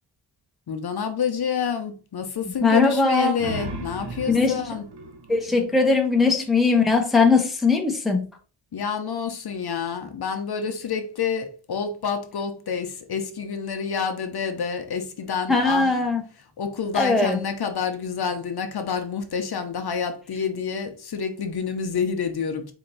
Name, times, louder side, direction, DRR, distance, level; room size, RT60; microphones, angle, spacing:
voice 1, 0.7-4.9 8.7-15.9 16.6-22.7, left 6 dB, 55° left, 0.7 m, -28 dB
voice 2, 2.6-3.3 4.3-4.5 5.3-8.3 15.5-16.2 16.9-17.4, left 4 dB, ahead, 0.6 m, -20 dB
sound 1, 3.1-6.5, right 2 dB, 60° right, 1.0 m, -37 dB
4.4 x 2.8 x 3.9 m
wide cardioid pair, 150°, 47 cm